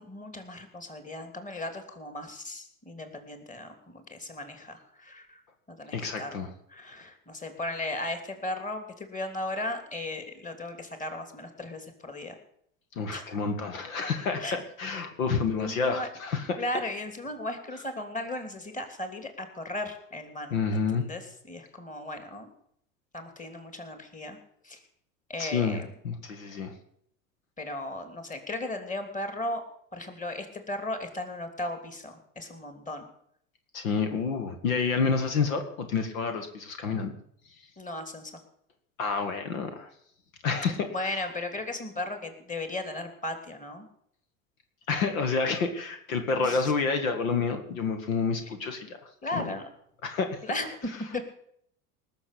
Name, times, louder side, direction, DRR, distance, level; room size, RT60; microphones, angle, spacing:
voice 1, 0.0-5.4 5.7-6.4 6.7-12.3 13.1-13.4 14.4-14.5 15.5-16.1 16.6-22.5 23.1-24.4 24.6-24.8 25.3-25.9 27.6-29.6 29.9-33.1 37.8-38.3 40.9-43.9 46.4-46.7 49.2-49.6 50.4-50.8 51.1-51.2, left 2 dB, 20° left, 7 dB, 3.0 m, -36 dB
voice 2, 5.9-6.5 13.0-16.6 20.5-21.0 25.4-26.7 33.7-37.1 39.0-39.9 40.4-41.1 44.9-49.5 50.0-50.4, left 5 dB, 75° left, 7 dB, 1.9 m, -29 dB
19.5 x 6.7 x 8.3 m, 0.68 s
hypercardioid pair, 80°, 41 cm